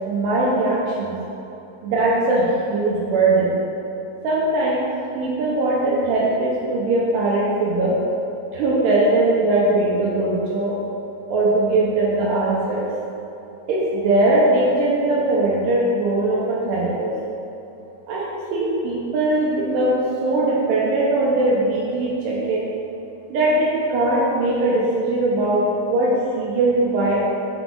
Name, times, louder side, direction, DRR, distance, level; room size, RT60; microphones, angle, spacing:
voice 1, 0.1-1.2 1.8-3.5 4.2-8.0 8.5-10.8 11.3-12.9 13.7-17.1 18.1-18.2 18.5-22.7 23.3-27.2, right 2 dB, 80° right, -5 dB, 2.8 m, -20 dB
6.9 x 4.0 x 6.6 m, 2.8 s
omnidirectional pair, 5.2 m